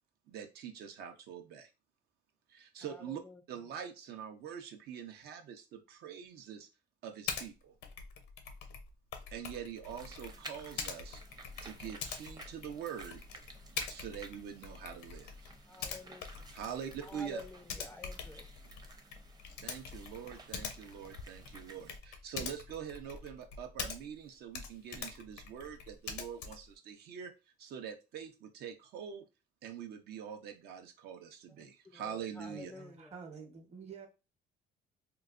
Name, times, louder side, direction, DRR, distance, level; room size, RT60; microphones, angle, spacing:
voice 1, 0.3-1.7 2.5-3.2 3.5-6.7 7.0-7.7 9.3-11.2 11.6-13.2 13.9-15.5 16.5-17.4 19.6-27.3 27.6-29.3 29.6-32.7, right 8 dB, 70° right, 0.6 m, -44 dB
voice 2, 2.8-3.6 15.7-16.2 17.0-18.5 31.6-33.1, left 2 dB, 15° left, 0.3 m, -50 dB
Typing, 7.3-7.5 7.8-24.2 24.5-26.7, left 6 dB, 85° left, 0.6 m, -44 dB
sound 1, 9.8-22.0, right 2 dB, 25° right, 0.6 m, -54 dB
voice 3, 32.5-34.1, right 6 dB, 40° right, 1.0 m, -49 dB
3.8 x 2.2 x 2.5 m
cardioid pair, 110°, 17 cm